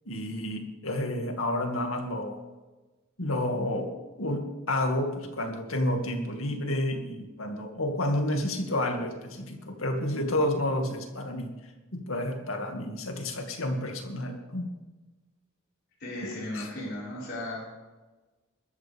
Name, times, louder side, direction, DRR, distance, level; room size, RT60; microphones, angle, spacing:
voice 1, 0.1-2.4 3.2-3.9 4.2-11.5 11.9-14.7 16.2-16.7, left 1 dB, 85° left, 4 dB, 2.3 m, -30 dB
voice 2, 16.0-17.6, left 1 dB, 55° left, -8 dB, 5.3 m, -36 dB
21.5 x 13.0 x 3.6 m, 1.2 s
head